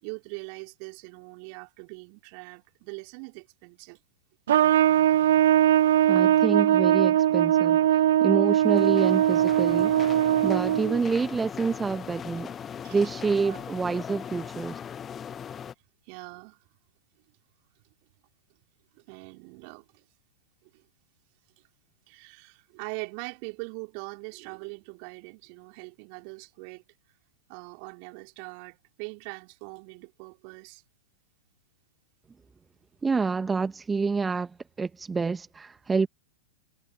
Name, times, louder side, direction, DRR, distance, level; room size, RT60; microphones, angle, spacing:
voice 1, 0.0-4.0 10.6-10.8 12.8-13.0 13.4-13.6 16.1-16.6 18.9-20.0 20.7-20.8 22.1-26.8 27.5-30.8, right 40 dB or more, 45° right, 4.1 m, -42 dB
Trumpet, 4.5-11.0, right 12 dB, 60° right, 0.4 m, -21 dB
voice 2, 6.1-9.9 10.4-12.5 12.9-14.8 33.0-36.1, right 4 dB, 15° right, 1.3 m, -28 dB
sound 1, 8.5-15.7, left 8 dB, 20° left, 0.9 m, -39 dB
figure-of-eight pair, 100°, 0 cm